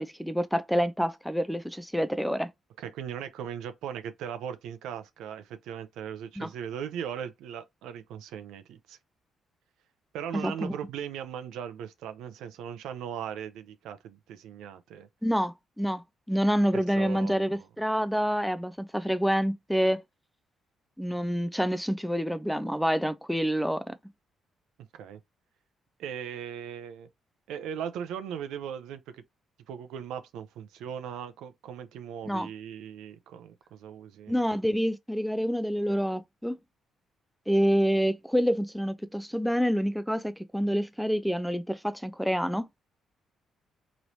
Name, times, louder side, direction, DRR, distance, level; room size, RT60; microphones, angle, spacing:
voice 1, 0.0-2.5 6.4-6.5 10.3-10.8 15.2-16.0 16.3-20.0 21.0-23.9 32.3-32.5 34.3-36.6 37.5-42.9, equal, ahead, 0.4 m, -27 dB
voice 2, 2.8-9.0 10.1-15.1 16.7-17.7 24.9-25.2 26.0-27.1 27.5-29.0 29.7-34.4, right 8 dB, 90° right, 0.5 m, -38 dB
3.0 x 3.0 x 2.7 m
cardioid pair, 90°, 0 cm